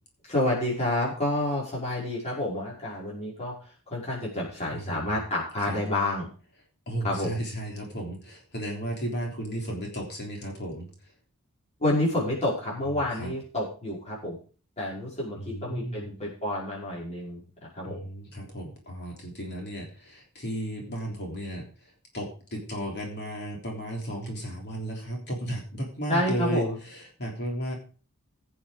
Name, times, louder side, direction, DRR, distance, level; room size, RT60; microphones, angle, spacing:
voice 1, 0.2-3.6 3.9-6.3 7.0-7.3 11.8-14.4 14.8-18.0 26.1-26.8, left 1 dB, 30° left, -5 dB, 5.4 m, -29 dB
voice 2, 4.7-5.0 5.7-5.8 6.9-10.9 12.8-13.3 15.3-16.1 17.8-27.8, right 1 dB, 50° left, 0 dB, 3.4 m, -34 dB
16.5 x 7.1 x 5.1 m, 0.38 s
head